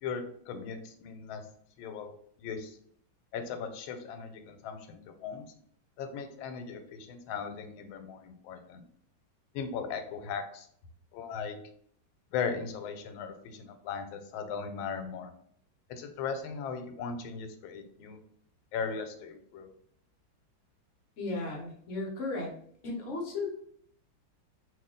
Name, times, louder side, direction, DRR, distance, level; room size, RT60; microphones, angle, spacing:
voice 1, 0.0-1.4 1.8-2.1 2.4-2.8 3.3-5.5 6.0-8.8 9.5-10.7 11.1-11.6 12.3-15.3 15.9-18.2 18.7-19.7, left 6 dB, 85° left, 7 dB, 1.4 m, -38 dB
voice 2, 21.2-22.5 22.8-23.5, left 3 dB, 55° left, -1 dB, 0.9 m, -35 dB
3.2 x 2.7 x 3.6 m, 0.63 s
omnidirectional pair, 2.1 m